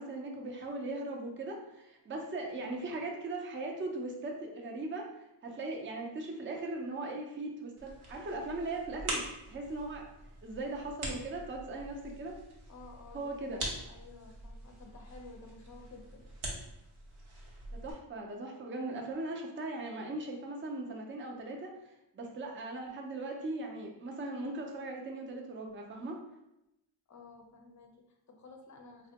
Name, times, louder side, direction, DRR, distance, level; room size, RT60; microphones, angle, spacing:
voice 1, 0.0-10.0 10.4-12.3 13.1-13.6 17.7-21.7 22.1-26.2, right 2 dB, 25° right, 0 dB, 0.5 m, -39 dB
sound 1, 7.8-17.9, right 1 dB, 85° right, 0.9 m, -44 dB
voice 2, 12.7-16.3 27.1-29.1, left 3 dB, 35° left, 3 dB, 0.5 m, -53 dB
3.3 x 2.1 x 2.8 m, 0.88 s
wide cardioid pair, 85°, 49 cm